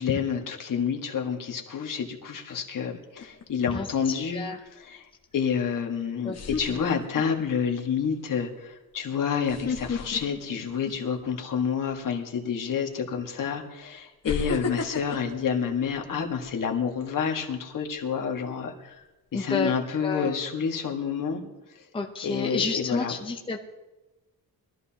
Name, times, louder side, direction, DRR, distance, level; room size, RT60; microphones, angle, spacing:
voice 1, 0.0-4.4 4.7-5.1 5.3-19.0 19.3-21.4 21.7-21.8 22.2-23.1, left 7 dB, 60° left, 2 dB, 1.6 m, -29 dB
sound 1, 3.2-3.7 5.6-5.7 6.3-7.4 7.9-8.1 9.4-11.3 11.7-11.9 12.9-13.0 14.2-16.5 16.9-17.2, left 5 dB, 45° left, 1.5 m, -33 dB
voice 2, 19.3-19.7 20.0-20.3 21.9-23.6, left 4 dB, 15° left, 3 dB, 0.7 m, -30 dB
21.5 x 13.5 x 2.9 m, 1.1 s
wide cardioid pair, 170°, 37 cm